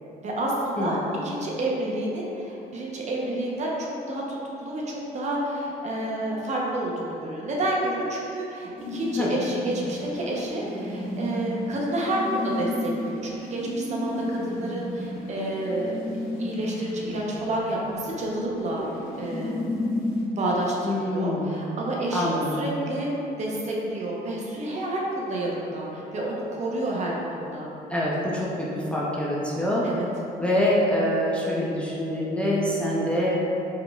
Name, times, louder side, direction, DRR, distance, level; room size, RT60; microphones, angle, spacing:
voice 1, 0.2-15.9 16.4-18.8 19.2-19.8 20.4-23.1 23.4-27.7 29.8-30.1, right 1 dB, 45° right, -3 dB, 0.8 m, -29 dB
sound 1, 8.8-20.2, left 1 dB, 55° left, 1.4 m, -33 dB
voice 2, 20.8-21.6 22.1-22.6 27.9-29.9 30.4-33.4, left 1 dB, 5° left, -6 dB, 0.5 m, -25 dB
4.7 x 3.4 x 2.3 m, 2.9 s
cardioid pair, 110°, 17 cm